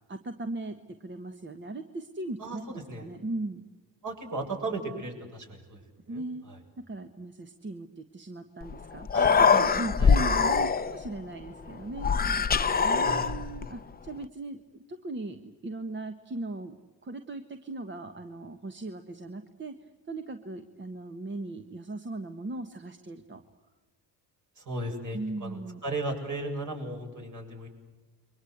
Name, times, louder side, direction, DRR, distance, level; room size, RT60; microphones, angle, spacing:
voice 1, 0.1-2.6 3.0-3.6 6.1-6.4 6.9-9.1 9.6-12.1 12.8-14.6 14.9-16.8 17.0-19.7 20.1-23.4 25.1-25.8, right 2 dB, 25° right, 7 dB, 1.5 m, -38 dB
voice 2, 2.4-3.1 4.0-6.6 9.1-9.7 10.0-10.1 13.0-13.3 24.6-27.7, right 2 dB, 45° right, 3 dB, 7.8 m, -36 dB
Human voice, 8.6-8.7 9.0-11.1 12.0-13.7, left 5 dB, 20° left, 0.8 m, -23 dB
29.5 x 23.5 x 8.1 m, 1.2 s
cardioid pair, 110°, 41 cm